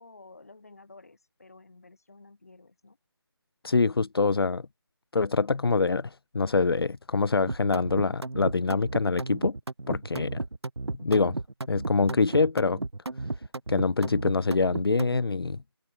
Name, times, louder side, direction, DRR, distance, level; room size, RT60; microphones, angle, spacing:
voice 1, 0.0-3.0, left 3 dB, 35° left, 5.2 m, -52 dB
voice 2, 3.6-4.6 5.1-9.5 9.9-10.4 11.0-11.4 11.7-12.8 13.7-15.6, left 4 dB, 65° left, 0.5 m, -25 dB
sound 1, 7.5-15.2, right 2 dB, 80° right, 1.9 m, -34 dB
open air
figure-of-eight pair, 180°, 14 cm